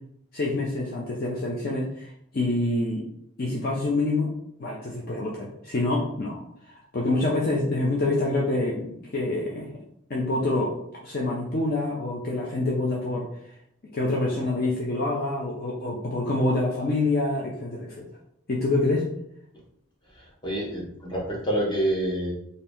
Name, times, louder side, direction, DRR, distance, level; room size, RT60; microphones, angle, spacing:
voice 1, 0.3-2.1 2.3-3.0 3.4-6.4 6.9-9.7 10.1-10.8 11.0-13.3 13.9-18.0 18.5-19.1, left 2 dB, 45° left, -4 dB, 0.5 m, -26 dB
voice 2, 20.1-22.3, right 1 dB, 20° left, -3 dB, 0.8 m, -27 dB
2.7 x 2.6 x 3.4 m, 0.73 s
head